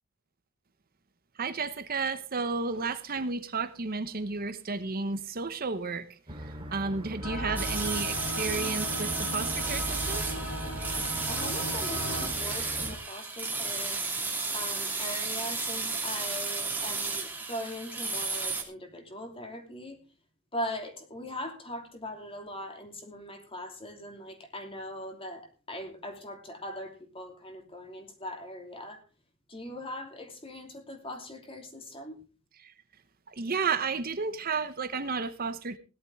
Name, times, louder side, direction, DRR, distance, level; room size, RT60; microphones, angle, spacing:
voice 1, 1.3-10.2 32.6-32.7 33.3-35.8, right 4 dB, 45° right, 0.9 m, -32 dB
sound 1, 6.3-13.0, equal, 25° right, 2.5 m, -41 dB
sound 2, 7.2-12.3, equal, 70° left, 4.1 m, -36 dB
sound 3, 7.6-18.6, right 3 dB, 10° right, 2.5 m, -33 dB
voice 2, 11.3-14.0 14.5-20.0 20.5-29.0 29.5-32.2, left 1 dB, 25° left, 2.9 m, -40 dB
17.0 x 12.0 x 3.5 m
head